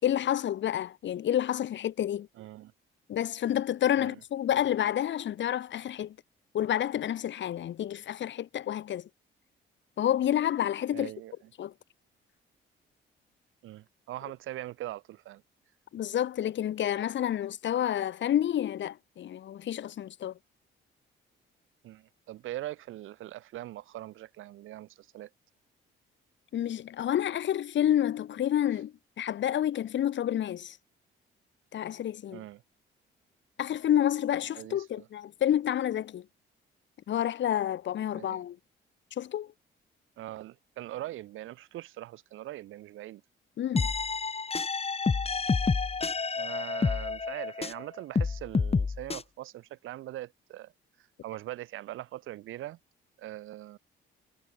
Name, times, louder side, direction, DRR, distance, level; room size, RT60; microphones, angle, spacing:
voice 1, 0.0-2.3 3.1-6.1 6.5-9.1 10.0-11.1 11.6-11.7 15.9-20.3 26.5-30.8 31.7-32.4 33.6-36.2 37.1-38.6 39.2-39.5 43.6-43.9, left 11 dB, 70° left, 2.9 m, -29 dB
voice 2, 2.4-2.7 4.0-4.2 10.9-11.3 13.6-15.4 21.8-25.3 32.3-32.6 34.5-35.1 38.1-38.4 40.2-43.2 46.3-50.7 51.2-52.8 53.2-53.8, right 15 dB, 85° right, 2.5 m, -41 dB
sound 1, 43.7-47.8 48.1-49.2, left 4 dB, 30° left, 3.7 m, -29 dB
cardioid pair, 90°, 20 cm